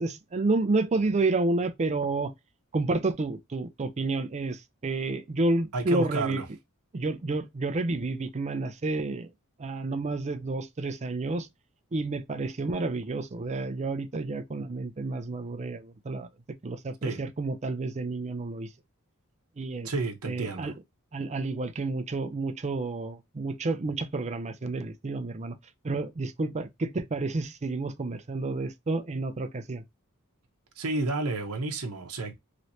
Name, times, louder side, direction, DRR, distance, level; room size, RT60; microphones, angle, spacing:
voice 1, 0.0-2.3 2.7-6.4 6.9-9.3 9.6-11.5 11.9-16.3 16.6-18.7 19.6-19.9 20.2-20.7 21.1-25.6 25.8-29.8, right 3 dB, 30° right, 0.5 m, -30 dB
voice 2, 5.7-6.5 17.0-17.2 19.8-20.7 30.8-32.3, right 3 dB, 75° right, 0.8 m, -31 dB
3.1 x 2.9 x 2.6 m
head